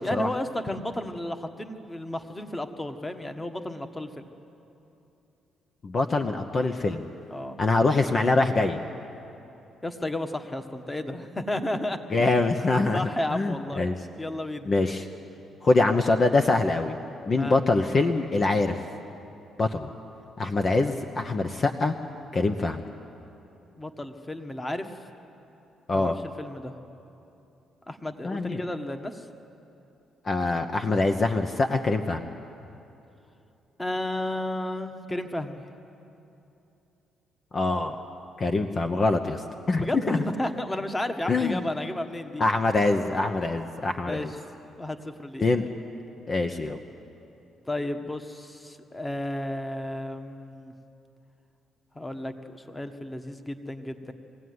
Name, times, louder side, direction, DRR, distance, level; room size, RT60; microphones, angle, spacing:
voice 1, 0.0-4.3 7.3-7.6 9.8-12.3 12.9-13.8 14.2-14.7 17.3-17.6 23.8-24.9 25.9-26.7 27.9-29.3 33.8-35.6 39.7-42.4 44.0-44.3 44.7-45.4 47.7-50.7 51.9-54.1, left 1 dB, 15° left, 7 dB, 1.4 m, -33 dB
voice 2, 5.8-7.1 7.6-8.8 12.1-13.0 13.3-13.9 14.7-15.1 15.6-17.0 17.3-18.8 19.6-19.9 20.4-21.9 22.3-22.8 25.9-26.2 28.2-28.6 30.2-32.2 37.5-38.0 38.4-40.2 41.3-41.6 42.4-44.3 45.4-45.6 46.3-46.8, left 3 dB, 40° left, 5 dB, 0.9 m, -24 dB
22.5 x 16.5 x 9.6 m, 2.9 s
cardioid pair, 90°, 0 cm